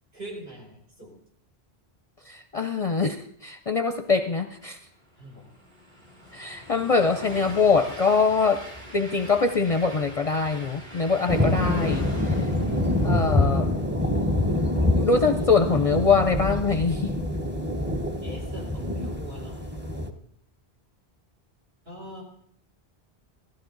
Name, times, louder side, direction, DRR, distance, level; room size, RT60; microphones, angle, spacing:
voice 1, 0.1-1.2 5.2-5.5 18.2-19.7 21.8-22.2, equal, 70° right, -2 dB, 4.8 m, -42 dB
voice 2, 2.3-4.8 6.3-8.7 8.9-12.5 13.0-13.7 15.0-17.2, left 4 dB, 40° left, 7 dB, 0.6 m, -23 dB
Train, 4.6-14.0, equal, 40° right, 4.0 m, -43 dB
sound 1, 11.3-20.1, left 1 dB, 10° right, 0.9 m, -25 dB
15.5 x 14.0 x 3.9 m, 0.66 s
omnidirectional pair, 1.1 m